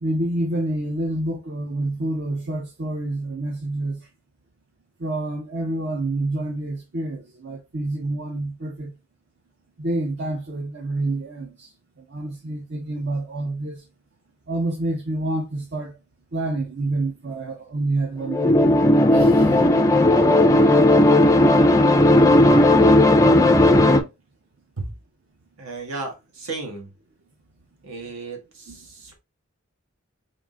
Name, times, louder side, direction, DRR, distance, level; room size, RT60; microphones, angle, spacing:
voice 1, 0.0-4.1 5.0-8.9 9.8-11.7 12.0-13.8 14.5-15.9 16.3-18.6 19.1-19.7 28.7-28.8, right 2 dB, 50° right, 0.6 m, -28 dB
sound 1, 18.3-24.0, left 1 dB, 15° left, 0.3 m, -15 dB
voice 2, 21.4-21.8 24.8-24.9 25.6-26.9 27.8-29.2, right 3 dB, 75° right, 1.3 m, -34 dB
3.6 x 2.6 x 3.6 m
head